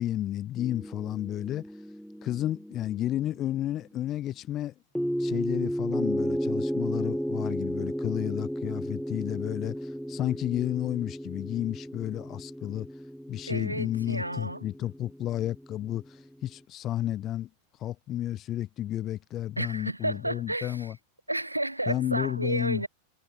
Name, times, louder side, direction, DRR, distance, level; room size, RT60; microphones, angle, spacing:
voice 1, 0.0-1.6 2.2-4.7 5.2-12.9 13.3-17.5 17.8-21.0 21.9-22.8, left 12 dB, 30° left, 1.8 m, -32 dB
sound 1, 0.6-3.5 5.0-16.2, equal, ahead, 0.3 m, -34 dB
voice 2, 13.5-14.6 19.6-20.9 21.3-22.9, right 1 dB, 85° right, 0.8 m, -31 dB
figure-of-eight pair, 90°, 0 cm